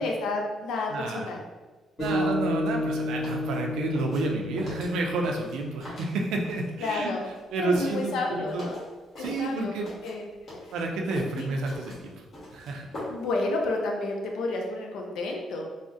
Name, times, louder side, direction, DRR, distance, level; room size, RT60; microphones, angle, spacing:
voice 1, 0.0-1.4 2.1-2.3 6.8-7.3 7.6-8.8 9.2-9.7 10.0-10.3 10.7-10.8 11.4-11.5 13.1-15.6, left 2 dB, 80° left, 1 dB, 0.5 m, -31 dB
voice 2, 0.9-1.3 2.0-7.1 7.5-8.7 9.2-9.9 10.7-12.1 12.5-12.9, right 2 dB, 85° right, 2 dB, 0.4 m, -30 dB
sound 1, 2.0-2.3 2.6-6.7 7.0-9.6 9.8-13.4 13.6-13.7, left 1 dB, 50° left, 1.3 m, -41 dB
sound 2, 2.0-6.4, left 1 dB, 30° left, 1.2 m, -31 dB
3.4 x 2.0 x 2.6 m, 1.3 s
cardioid pair, 90°, 0 cm